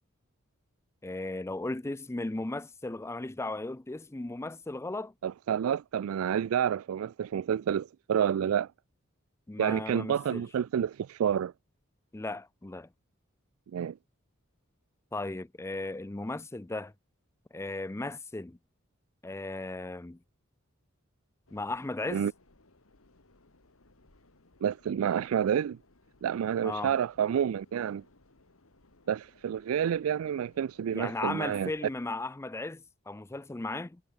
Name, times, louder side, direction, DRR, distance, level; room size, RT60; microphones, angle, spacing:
voice 1, 1.0-5.1 9.5-10.4 12.1-12.9 15.1-16.9 17.5-18.6 19.2-20.2 21.5-22.2 26.6-27.0 30.9-34.0, left 2 dB, 15° left, 0.5 m, -36 dB
voice 2, 5.2-8.7 9.6-11.5 13.7-14.0 22.1-22.3 24.6-25.8 26.2-28.0 29.1-31.7, right 8 dB, 90° right, 0.3 m, -29 dB
sound 1, 21.5-32.1, left 2 dB, 80° left, 2.2 m, -63 dB
head